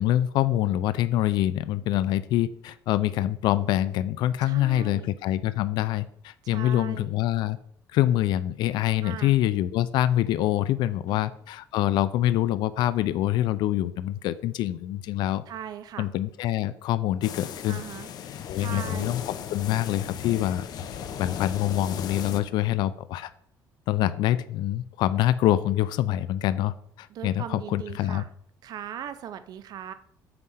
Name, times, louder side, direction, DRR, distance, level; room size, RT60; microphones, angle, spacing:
voice 1, 0.0-7.6 7.9-15.4 16.0-17.8 18.5-20.7 21.2-23.3 23.9-28.2, left 13 dB, 75° left, 15 dB, 0.5 m, -25 dB
voice 2, 4.4-5.1 6.4-7.2 9.0-9.3 11.1-11.3 15.5-16.1 17.7-18.1 18.5-19.2 27.1-28.3 28.6-29.9, right 9 dB, 60° right, 11 dB, 0.6 m, -39 dB
sound 1, 17.2-22.4, left 8 dB, 60° left, 0.9 m, -36 dB
7.9 x 4.8 x 5.6 m, 0.66 s
cardioid pair, 115°, 8 cm